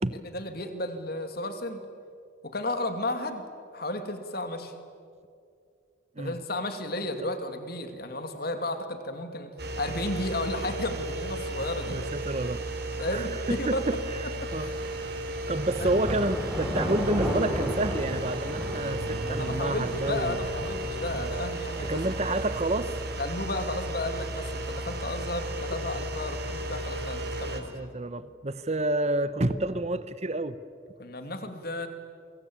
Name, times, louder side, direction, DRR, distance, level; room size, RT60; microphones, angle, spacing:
voice 1, 0.1-1.8 2.4-3.4 3.7-4.7 6.2-12.0 13.0-13.8 14.4-14.8 15.8-15.9 19.2-22.0 22.3-22.4 23.2-27.7 31.0-31.9, left 1 dB, 50° left, 7 dB, 2.6 m, -33 dB
sound 1, 9.6-27.6, right 1 dB, 55° right, 3.0 m, -34 dB
voice 2, 11.9-12.6 13.1-14.0 14.5-14.7 15.5-20.4 21.8-22.9 27.5-30.6, right 1 dB, 35° right, 14 dB, 0.9 m, -29 dB
sound 2, 14.7-22.7, equal, 5° right, 4.5 m, -35 dB
28.5 x 23.5 x 8.8 m, 2.3 s
head